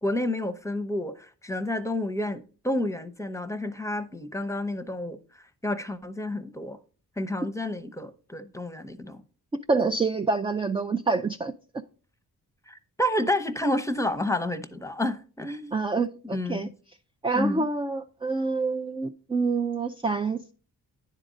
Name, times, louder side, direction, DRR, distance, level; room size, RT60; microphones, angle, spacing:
voice 1, 0.0-6.8 7.2-9.2 12.7-15.8 16.2-16.7 17.3-17.7, left 1 dB, 10° left, 0.7 m, -30 dB
voice 2, 9.7-11.5 15.7-16.7 17.2-20.5, right 4 dB, 15° right, 0.3 m, -27 dB
9.8 x 3.7 x 5.1 m
cardioid pair, 65°, 39 cm